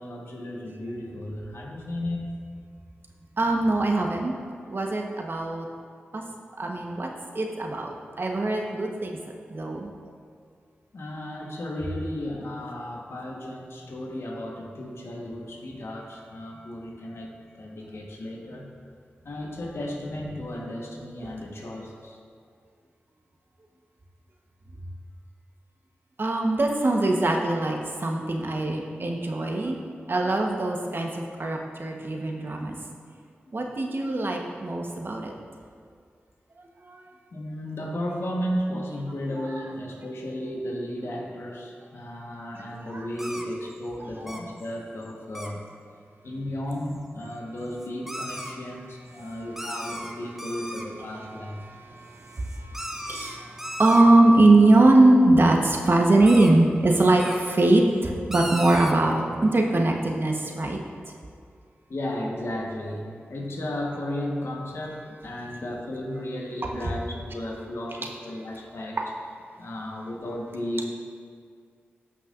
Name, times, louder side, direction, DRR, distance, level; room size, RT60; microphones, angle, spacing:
voice 1, 0.0-2.4 10.9-18.8 19.2-22.2 37.3-45.6 46.2-51.6 61.9-69.0 69.6-70.9, left 1 dB, 75° left, -1 dB, 1.3 m, -34 dB
voice 2, 3.4-4.3 4.7-5.7 6.1-6.2 6.6-9.2 9.5-9.9 21.2-21.3 26.2-29.8 30.1-32.8 33.5-35.3 36.8-37.0 39.4-39.7 42.7-43.1 44.0-44.2 49.1-49.4 51.1-60.8 65.5-65.6 66.8-66.9 69.0-69.1, right 2 dB, 55° right, 1 dB, 1.1 m, -22 dB
sound 1, 43.2-43.8 44.3-44.7 45.0-45.1 45.3-45.5 46.9-47.0 47.2-47.3 47.6-48.5 49.2-49.3 49.6-50.9 52.3-54.0 56.2-56.5 57.2-57.4 58.3-58.9, equal, 5° right, 1.0 m, -36 dB
13.5 x 5.6 x 2.5 m, 2.2 s
cardioid pair, 40°, 4 cm